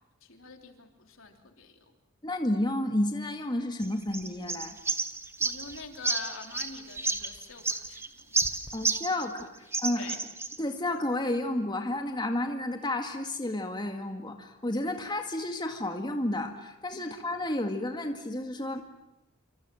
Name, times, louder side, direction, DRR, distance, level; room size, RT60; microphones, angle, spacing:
voice 1, 0.2-1.8 5.4-8.9 9.2-9.5 10.0-10.2 17.0-17.2, left 4 dB, 75° left, 5 dB, 3.4 m, -46 dB
voice 2, 2.2-4.8 8.7-9.5 9.8-10.1 10.6-18.8, left 1 dB, 20° left, 5 dB, 2.0 m, -31 dB
sound 1, 3.8-9.4 9.7-10.6, right 3 dB, 10° right, 1.4 m, -31 dB
27.5 x 26.0 x 7.8 m, 0.87 s
head